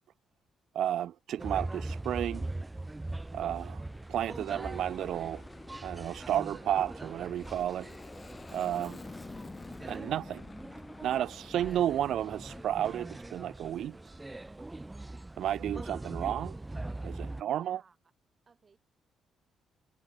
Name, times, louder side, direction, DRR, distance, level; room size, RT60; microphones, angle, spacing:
voice 1, 0.7-2.4 3.3-3.8 4.1-5.4 5.8-7.9 8.5-9.0 9.8-10.4 11.0-13.9 15.4-16.6 17.0-17.8, right 11 dB, 70° right, 0.5 m, -32 dB
sound 1, 1.4-17.4, right 2 dB, 15° right, 4.3 m, -42 dB
Aircraft, 3.8-12.6, left 3 dB, 25° left, 3.9 m, -49 dB
voice 2, 17.1-18.0 18.5-18.8, right 5 dB, 35° right, 6.3 m, -62 dB
cardioid pair, 90°, 0 cm